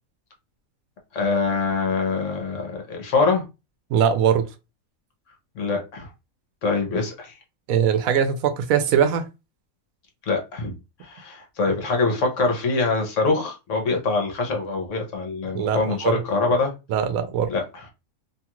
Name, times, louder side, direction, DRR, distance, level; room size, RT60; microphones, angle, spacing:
voice 1, 1.1-3.4 5.6-6.1 6.6-7.3 10.3-10.7 11.0-16.7 17.5-17.8, left 3 dB, 65° left, 1.1 m, -24 dB
voice 2, 3.9-4.5 7.7-9.2 15.5-16.2 16.9-17.5, right 8 dB, 80° right, 1.0 m, -21 dB
2.8 x 2.4 x 2.9 m
omnidirectional pair, 1.5 m